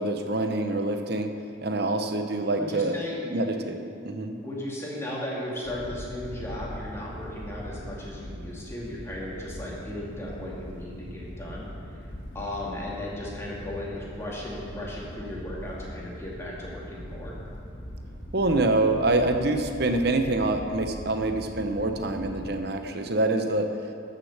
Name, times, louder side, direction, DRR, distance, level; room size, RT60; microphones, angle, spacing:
voice 1, 0.0-1.3 1.6-3.0 3.3-4.4 18.3-23.7, right 2 dB, 50° right, 6 dB, 0.9 m, -26 dB
voice 2, 2.5-3.2 4.4-12.0 12.3-17.4, left 1 dB, 15° left, -5 dB, 2.3 m, -36 dB
sound 1, 5.6-22.6, equal, 70° left, 2.8 m, -41 dB
13.0 x 6.7 x 7.2 m, 2.5 s
head